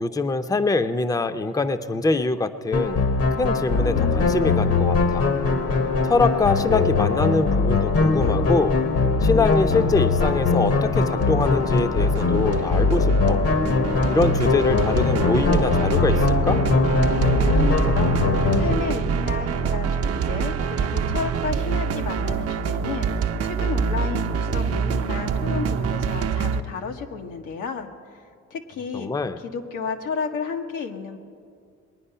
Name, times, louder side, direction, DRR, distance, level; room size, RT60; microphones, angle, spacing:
voice 1, 0.0-3.0 3.4-5.2 6.0-8.8 9.2-13.4 14.1-16.6 28.9-29.4, left 3 dB, 10° left, 11 dB, 0.5 m, -24 dB
sound 1, 2.7-18.8, left 4 dB, 50° left, 1.0 m, -21 dB
sound 2, 9.5-26.6, right 6 dB, 55° right, 0.7 m, -26 dB
voice 2, 17.3-18.2 18.5-27.9 28.5-29.1 29.4-31.2, left 5 dB, 90° left, 4 dB, 1.1 m, -32 dB
21.0 x 9.6 x 5.6 m, 2.2 s
cardioid pair, 90°, 30 cm